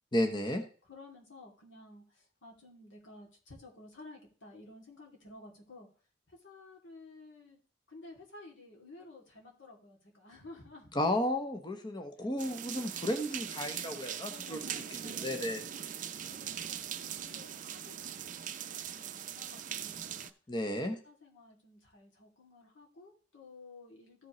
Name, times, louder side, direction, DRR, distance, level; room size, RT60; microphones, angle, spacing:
voice 1, 0.1-0.6 10.9-15.6 20.5-21.0, left 1 dB, 25° left, 5 dB, 0.9 m, -33 dB
voice 2, 0.9-5.9 6.3-7.6 7.9-10.9 14.3-15.5 16.3-20.3 21.0-24.3, left 2 dB, 90° left, -1 dB, 2.7 m, -54 dB
sound 1, 12.4-20.3, right 9 dB, 45° right, 0.5 m, -41 dB
14.0 x 5.2 x 3.1 m, 0.40 s
head